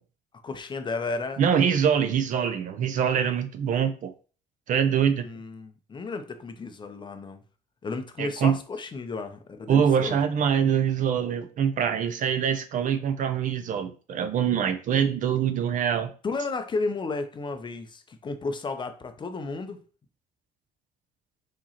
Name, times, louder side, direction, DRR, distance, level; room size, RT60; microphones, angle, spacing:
voice 1, 0.4-1.4 5.2-7.4 7.8-10.3 16.2-19.8, left 3 dB, 30° left, 0.5 m, -33 dB
voice 2, 1.4-4.1 4.7-5.2 8.2-8.6 9.7-16.1, right 8 dB, 50° right, 0.5 m, -24 dB
4.7 x 3.0 x 2.8 m
cardioid pair, 110°, 17 cm